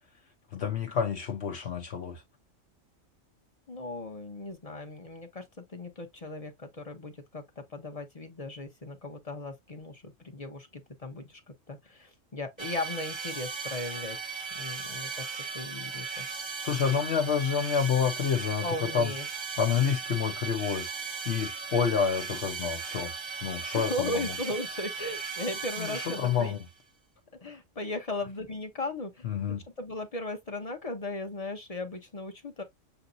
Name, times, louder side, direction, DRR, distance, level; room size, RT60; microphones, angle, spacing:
voice 1, 0.5-2.2 16.6-19.1 19.6-20.9 21.2-23.1 23.4-24.3 25.8-26.6 29.2-29.6, left 7 dB, 60° left, 1.0 m, -28 dB
voice 2, 3.7-14.2 14.5-15.3 15.5-16.2 18.6-19.3 23.7-26.6 27.4-32.6, left 2 dB, 30° left, 0.9 m, -37 dB
sound 1, 12.6-26.7, right 5 dB, 30° right, 0.5 m, -37 dB
6.9 x 2.8 x 2.6 m
omnidirectional pair, 1.3 m